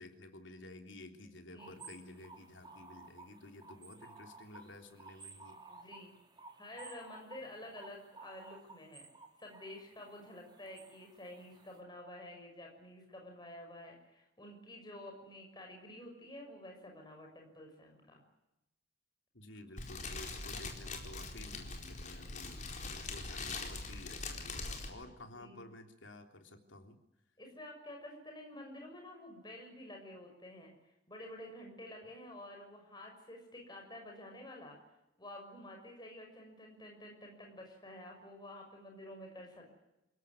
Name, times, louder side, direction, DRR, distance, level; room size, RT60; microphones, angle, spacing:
voice 1, 0.0-5.6 19.3-27.0, left 1 dB, 75° left, 6 dB, 3.4 m, -52 dB
sound 1, 1.6-11.8, right 3 dB, 20° right, 3.1 m, -55 dB
voice 2, 5.7-6.1 6.6-9.1 9.4-18.2 25.1-25.6 27.4-30.7 31.1-34.8 35.2-39.8, left 1 dB, 20° left, 1 dB, 6.3 m, -50 dB
Fire, 19.8-24.9, left 3 dB, 40° left, 4.5 m, -42 dB
28.0 x 17.0 x 9.7 m, 0.91 s
head